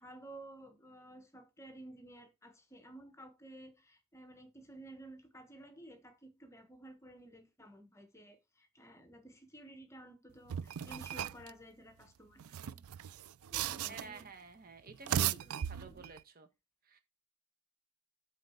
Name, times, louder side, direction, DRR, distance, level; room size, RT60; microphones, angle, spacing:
voice 1, 0.0-12.4 12.7-12.8 13.5-14.3 14.8-16.1, right 1 dB, 15° left, 1.2 m, -54 dB
sound 1, 10.5-11.5 12.4-14.2 14.9-16.2, right 10 dB, 80° right, 0.4 m, -37 dB
voice 2, 13.9-16.5 16.8-17.0, right 4 dB, 40° right, 1.3 m, -52 dB
7.8 x 4.0 x 6.4 m
head